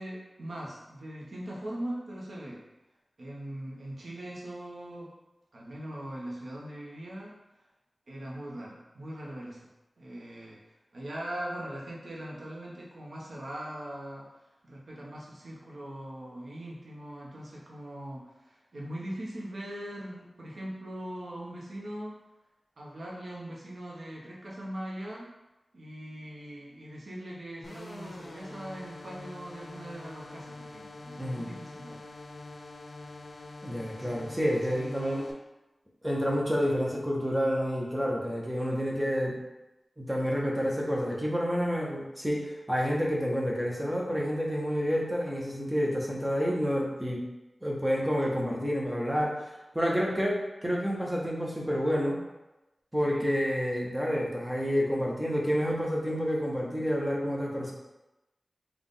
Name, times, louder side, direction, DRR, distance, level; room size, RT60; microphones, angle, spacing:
voice 1, 0.0-2.6 3.2-5.1 5.5-7.3 8.1-9.7 10.0-10.6 10.9-14.2 14.6-22.2 22.8-25.3 25.7-32.0 33.9-34.2 34.7-34.9 53.0-53.3, right 1 dB, 80° right, -4 dB, 1.0 m, -41 dB
sound 1, 27.6-35.3, left 2 dB, 70° left, 0.5 m, -45 dB
voice 2, 31.2-31.5 33.6-35.2 36.0-39.4 40.0-47.2 47.6-49.5 49.7-52.2 52.9-57.7, equal, 10° right, -2 dB, 0.9 m, -29 dB
4.0 x 2.4 x 3.7 m, 0.99 s
wide cardioid pair, 50°, 0 cm